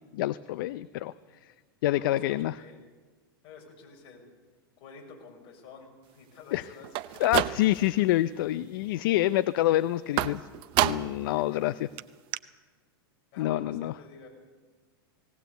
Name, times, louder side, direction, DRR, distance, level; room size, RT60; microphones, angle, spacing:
voice 1, 0.1-1.1 1.8-2.5 6.5-6.6 7.2-10.4 10.8-11.7 13.4-13.9, left 15 dB, 65° left, 16 dB, 0.6 m, -26 dB
voice 2, 1.9-2.8 3.4-4.3 4.8-7.5 11.2-11.8 13.3-14.3, left 5 dB, 45° left, 2 dB, 6.4 m, -49 dB
sound 1, 6.8-8.0 8.4-8.9 10.2-11.3 11.6-11.7 12.0-12.1 12.3-12.4, right 15 dB, 45° right, 0.8 m, -29 dB
19.0 x 18.5 x 8.2 m, 1.4 s
hypercardioid pair, 120°, 12 cm